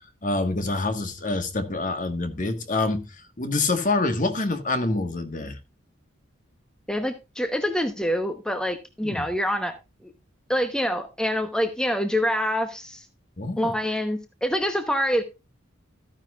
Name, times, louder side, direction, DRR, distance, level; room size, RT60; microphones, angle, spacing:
voice 1, 0.2-5.6 9.0-9.2 13.4-13.7, left 2 dB, 40° left, 1.5 m, -26 dB
voice 2, 6.9-9.8 10.0-10.1 10.5-13.1 13.6-15.2, equal, 5° left, 1.0 m, -26 dB
14.0 x 9.7 x 2.4 m
head